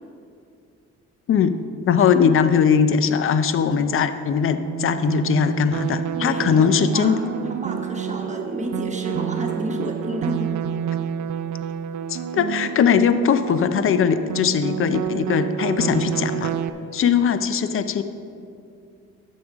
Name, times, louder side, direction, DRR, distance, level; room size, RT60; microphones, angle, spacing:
voice 1, 1.9-7.2 12.1-16.5 16.9-18.0, left 7 dB, 45° left, 11 dB, 0.6 m, -20 dB
sound 1, 4.6-16.7, right 9 dB, 75° right, 0.5 m, -29 dB
voice 2, 6.2-6.7 6.9-7.2 7.4-10.4, right 1 dB, 25° right, 1 dB, 1.2 m, -30 dB
11.5 x 8.0 x 3.6 m, 2.5 s
cardioid pair, 90°, 30 cm